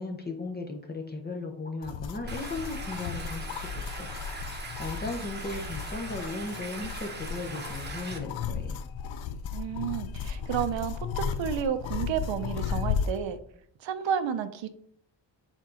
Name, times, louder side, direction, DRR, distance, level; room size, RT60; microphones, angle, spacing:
voice 1, 0.0-4.1 4.8-8.9, left 3 dB, 20° left, 2 dB, 0.7 m, -37 dB
sound 1, 1.8-13.2, left 6 dB, 90° left, 0.7 m, -35 dB
Stream, 2.3-8.2, right 3 dB, 20° right, 0.9 m, -41 dB
voice 2, 9.5-13.4 13.8-14.7, right 8 dB, 75° right, 11 dB, 0.8 m, -31 dB
8.2 x 4.6 x 3.8 m, 0.69 s
wide cardioid pair, 160°, 45 cm